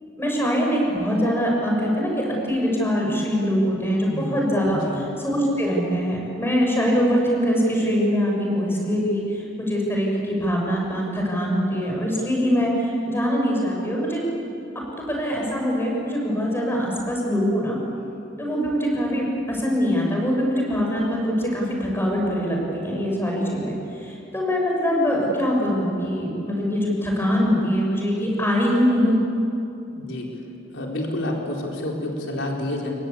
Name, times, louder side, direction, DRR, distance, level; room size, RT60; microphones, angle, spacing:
voice 1, 0.2-14.2 14.7-17.8 18.4-23.7 24.0-29.2, equal, 10° left, -1 dB, 6.5 m, -23 dB
voice 2, 4.1-4.4 4.7-5.1 29.9-30.3 30.7-32.9, left 1 dB, 85° left, -1 dB, 4.3 m, -29 dB
28.5 x 22.5 x 8.5 m, 2.8 s
head